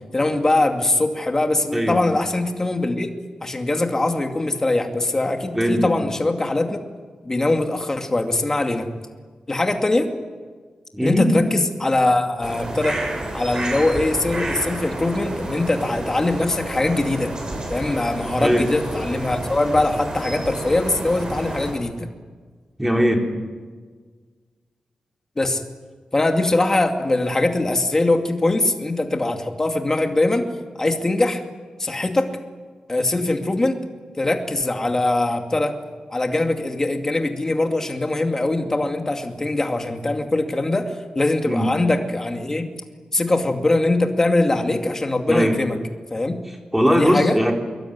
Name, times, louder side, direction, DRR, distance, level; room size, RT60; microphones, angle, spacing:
voice 1, 0.1-3.1 3.4-6.8 7.2-8.9 9.5-10.1 11.0-13.0 13.3-17.3 17.7-22.1 25.4-25.6 26.1-30.5 30.8-31.4 31.8-32.3 32.9-33.8 34.2-35.8 36.1-42.7 43.1-45.8 46.1-46.4 46.9-47.4, left 2 dB, 20° left, 4 dB, 2.5 m, -22 dB
voice 2, 5.5-5.9 10.9-11.3 18.4-18.7 22.8-23.2 41.4-41.7 45.3-45.6 46.5-47.5, equal, 5° right, 2 dB, 3.7 m, -19 dB
sound 1, 12.4-21.7, right 1 dB, 30° right, 7.4 m, -30 dB
25.5 x 22.0 x 9.6 m, 1.5 s
wide cardioid pair, 175°, 2 cm